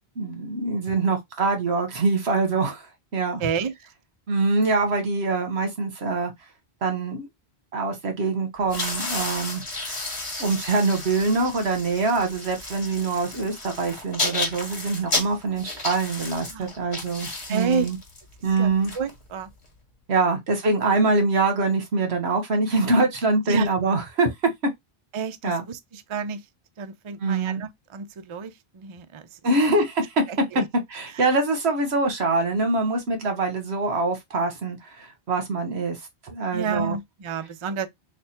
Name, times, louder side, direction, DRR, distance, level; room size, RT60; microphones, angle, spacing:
voice 1, 0.2-2.9 3.1-3.4 4.3-6.3 6.8-7.3 7.7-9.6 10.4-18.0 18.4-18.9 20.1-24.3 25.4-25.6 27.2-27.6 29.4-30.2 30.9-36.0 36.2-37.0, right 3 dB, 75° right, 1.3 m, -24 dB
voice 2, 3.4-3.7 16.5-16.7 17.5-17.9 18.6-19.5 20.2-20.4 23.5-23.7 25.1-26.5 26.8-29.7 30.3-30.7 31.1-31.3 36.5-37.9, right 5 dB, 50° right, 0.3 m, -30 dB
sound 1, 8.6-19.7, left 2 dB, 30° left, 1.1 m, -32 dB
3.3 x 2.3 x 4.2 m
omnidirectional pair, 1.1 m